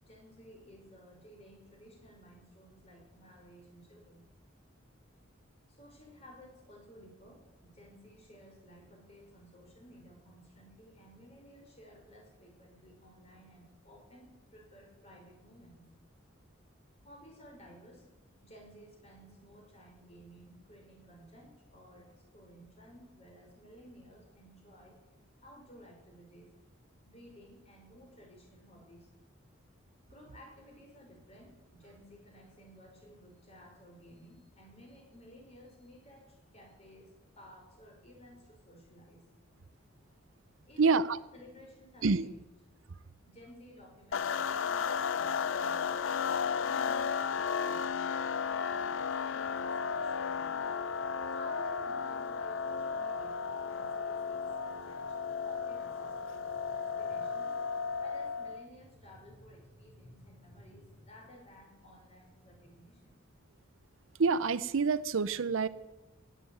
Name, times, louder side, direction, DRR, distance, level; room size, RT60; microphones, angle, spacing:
voice 1, 0.0-4.2 5.7-15.8 17.0-18.1 18.4-25.0 25.4-26.5 27.0-29.1 30.1-39.2 40.6-42.4 43.2-48.2 48.6-50.6 51.3-57.6 58.0-63.2, equal, 30° left, 0 dB, 5.3 m, -56 dB
voice 2, 40.8-41.2 42.0-42.3 64.2-65.7, right 4 dB, 75° right, 16 dB, 0.6 m, -27 dB
sound 1, 44.1-58.7, left 6 dB, 65° left, 0.5 m, -34 dB
18.0 x 7.7 x 9.0 m, 1.1 s
head